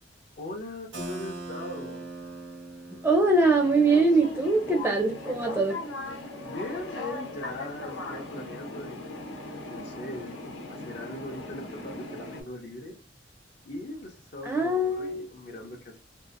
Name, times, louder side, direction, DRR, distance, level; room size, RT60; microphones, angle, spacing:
voice 1, 0.4-2.1 6.4-9.3 9.6-12.9 13.6-16.0, left 1 dB, 50° left, 0.6 m, -40 dB
Keyboard (musical), 0.9-6.5, right 2 dB, 85° right, 0.9 m, -43 dB
voice 2, 3.0-5.8 14.4-15.2, right 2 dB, 10° right, 0.5 m, -23 dB
sound 1, 3.5-12.4, left 2 dB, 90° left, 0.9 m, -39 dB
2.7 x 2.4 x 2.5 m
head